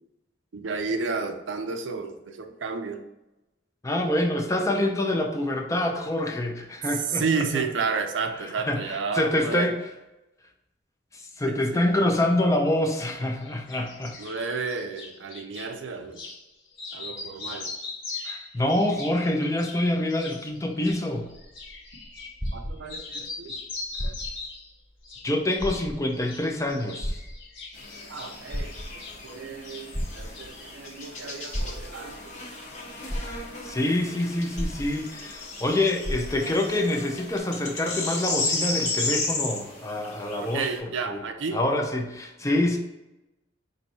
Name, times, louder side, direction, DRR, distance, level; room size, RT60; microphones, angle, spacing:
voice 1, 0.5-3.0 7.1-9.7 11.5-11.9 14.2-16.2 16.9-17.7 22.5-23.6 24.0-24.1 28.1-32.4 40.5-41.6, right 4 dB, 80° right, 6 dB, 0.5 m, -32 dB
voice 2, 3.8-7.6 8.4-9.8 11.1-14.2 18.2-21.3 25.2-27.3 33.2-41.2 41.5-42.8, left 1 dB, 15° left, 3 dB, 0.5 m, -26 dB
sound 1, 13.4-15.7 16.1-16.4 16.7-22.6 22.9-24.7 25.0-25.8 26.1-29.4 29.6-30.7, left 3 dB, 85° left, 1.2 m, -40 dB
sound 2, 21.3-23.3 23.9-24.6 25.0-25.1 25.6-26.3 27.0-27.8 28.3-29.2 29.9-30.7 31.5-32.2 32.7-32.8 33.1-33.8 34.6-35.4 35.6-35.7 36.0-36.7 37.4-37.5, equal, 5° right, 1.1 m, -33 dB
sound 3, 27.7-40.8, left 3 dB, 40° left, 0.9 m, -34 dB
4.4 x 2.6 x 4.1 m, 0.98 s
head